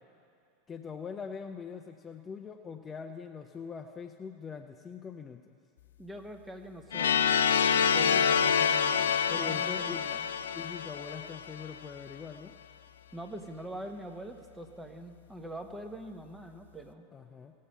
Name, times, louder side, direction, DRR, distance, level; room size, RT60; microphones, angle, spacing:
voice 1, 0.7-5.4 9.3-10.0 10.5-12.5 17.1-17.5, left 6 dB, 25° left, 6 dB, 0.6 m, -42 dB
voice 2, 6.0-7.2 7.7-10.3 13.1-17.1, right 1 dB, 10° right, 5 dB, 1.2 m, -44 dB
sound 1, 6.9-11.8, left 7 dB, 80° left, 0.4 m, -27 dB
18.0 x 7.5 x 5.6 m, 2.4 s
hypercardioid pair, 90°, 0 cm